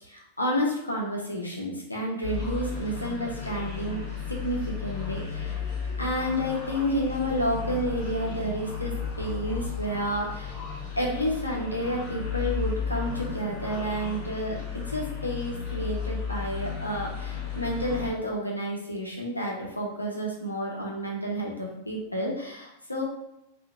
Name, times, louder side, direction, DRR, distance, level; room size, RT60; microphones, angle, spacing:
voice 1, 0.0-4.0 4.3-5.6 6.0-10.6 11.0-23.0, equal, 85° left, -2 dB, 0.6 m, -30 dB
sound 1, 2.2-18.1, left 6 dB, 40° left, 0.7 m, -34 dB
2.8 x 2.4 x 2.4 m, 0.86 s
figure-of-eight pair, 90°, 0 cm